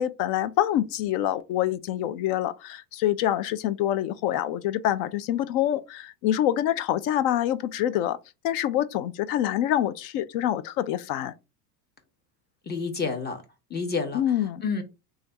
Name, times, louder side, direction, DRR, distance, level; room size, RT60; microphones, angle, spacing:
voice 1, 0.0-8.2 8.4-11.3 14.1-14.6, left 12 dB, 45° left, 0.4 m, -26 dB
voice 2, 12.7-13.4 13.7-14.2 14.6-14.8, left 4 dB, 20° left, 1.0 m, -29 dB
3.1 x 2.4 x 3.9 m
hypercardioid pair, 95°, 49 cm